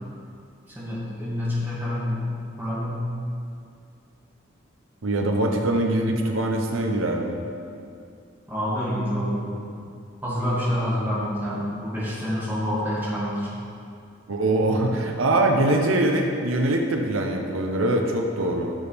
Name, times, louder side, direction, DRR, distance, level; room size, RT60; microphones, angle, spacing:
voice 1, 0.7-3.0 8.5-9.6 10.2-13.5, equal, 10° right, -9 dB, 2.4 m, -27 dB
voice 2, 5.0-7.4 14.3-18.7, right 1 dB, 90° right, 2 dB, 0.8 m, -23 dB
13.0 x 6.9 x 3.5 m, 2.5 s
head